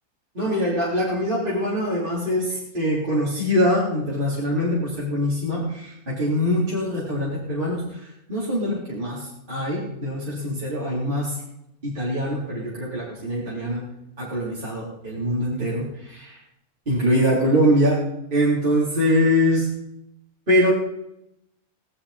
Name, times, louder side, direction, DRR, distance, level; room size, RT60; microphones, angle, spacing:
voice 1, 0.4-7.8 8.3-11.3 11.8-13.8 14.2-16.4 16.9-18.0 18.3-19.7 20.5-20.7, equal, 35° right, -8 dB, 3.9 m, -23 dB
17.0 x 12.0 x 4.3 m, 0.83 s
omnidirectional pair, 1.5 m